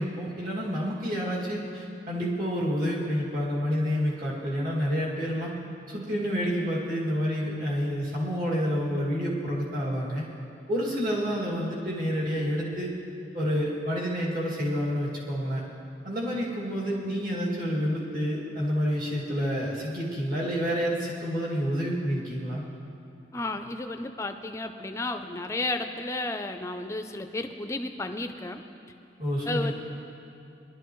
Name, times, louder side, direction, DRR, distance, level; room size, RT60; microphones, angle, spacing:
voice 1, 0.0-5.5 5.9-10.3 10.7-12.9 13.3-15.6 16.0-22.6 29.2-29.7, equal, 45° right, -6 dB, 2.2 m, -29 dB
voice 2, 23.3-28.6 29.5-29.7, left 2 dB, 15° left, 7 dB, 0.4 m, -33 dB
20.0 x 12.0 x 3.1 m, 2.7 s
head